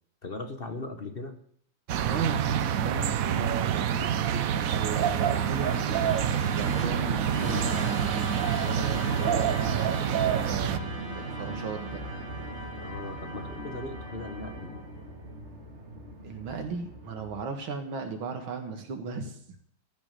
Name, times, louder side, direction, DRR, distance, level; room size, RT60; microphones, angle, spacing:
voice 1, 0.2-1.4 12.8-14.8, left 3 dB, 35° left, 7 dB, 1.0 m, -38 dB
sound 1, 1.9-10.8, right 9 dB, 65° right, 0.9 m, -27 dB
voice 2, 2.0-8.2 8.6-12.0 16.2-19.4, right 4 dB, 85° right, 5 dB, 2.4 m, -36 dB
Musical instrument, 2.3-17.6, right 2 dB, 35° right, 2.2 m, -38 dB
14.5 x 6.3 x 8.9 m, 0.64 s
omnidirectional pair, 2.2 m